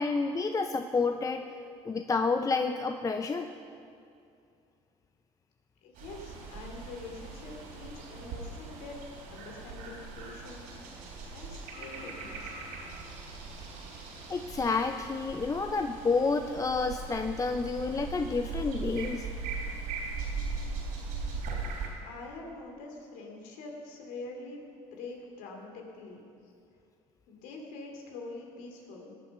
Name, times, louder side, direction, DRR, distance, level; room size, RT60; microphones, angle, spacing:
voice 1, 0.0-1.5 1.9-3.5 14.3-19.3, left 4 dB, 25° left, 6 dB, 0.6 m, -29 dB
voice 2, 5.8-9.0 9.3-10.6 11.3-12.5 22.0-24.6 24.9-26.3 27.3-29.1, left 3 dB, 75° left, 1 dB, 2.6 m, -45 dB
sound 1, 6.0-21.9, right 4 dB, 80° right, 3.7 m, -39 dB
19.0 x 7.2 x 5.8 m, 2.5 s
supercardioid pair, 80°, 14 cm